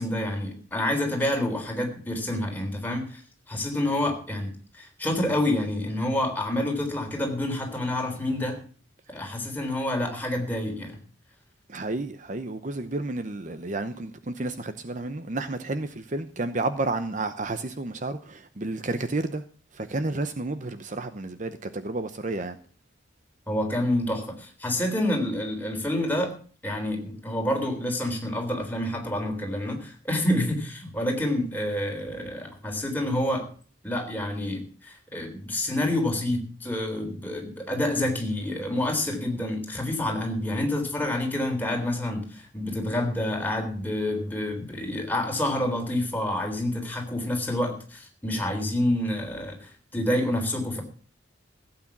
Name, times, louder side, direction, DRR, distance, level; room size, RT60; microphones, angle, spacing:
voice 1, 0.0-3.2 3.5-8.6 9.1-11.0 23.5-26.3 26.6-33.5 33.8-50.8, left 1 dB, 10° left, 3.6 m, -28 dB
voice 2, 11.7-19.4 19.7-22.6, right 2 dB, 40° right, 0.8 m, -31 dB
16.0 x 8.8 x 7.3 m
head